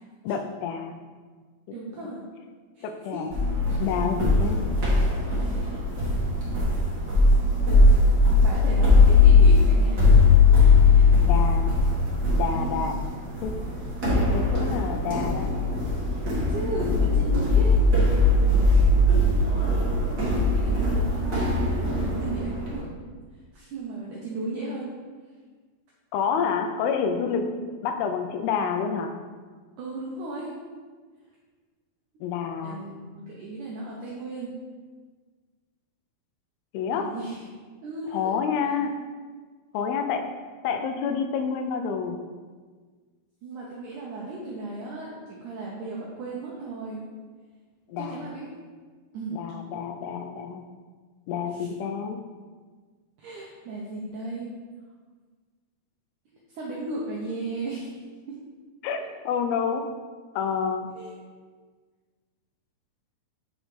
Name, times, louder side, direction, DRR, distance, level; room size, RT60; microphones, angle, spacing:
voice 1, 0.2-1.0 2.8-3.3 3.8-4.8 11.2-11.7 12.3-12.9 13.4-13.5 14.2-15.5 26.1-27.5 27.8-29.1 32.2-32.8 36.7-37.1 38.1-38.9 39.7-40.2 40.6-42.2 47.9-48.3 49.3-50.6 51.3-52.2 58.8-59.0 59.3-59.8 60.4-60.9, left 6 dB, 80° left, 6 dB, 2.4 m, -28 dB
voice 2, 1.7-2.2 2.8-2.9 3.1-3.2 5.4-5.5 8.4-10.0 10.9-11.0 12.5-12.8 16.2-17.8 18.6-18.9 20.2-21.1 21.9-22.9 23.5-24.9 27.4-27.6 29.8-30.5 32.6-34.5 36.9-37.4 37.8-38.3 43.4-47.0 48.0-48.5 49.1-49.4 51.5-51.7 53.2-54.5 56.5-57.9 58.3-58.4 60.9-61.1, right 2 dB, 80° right, -4 dB, 1.8 m, -35 dB
sound 1, 3.3-22.8, left 3 dB, 45° right, 1.2 m, -20 dB
7.9 x 5.5 x 3.2 m, 1.5 s
omnidirectional pair, 4.7 m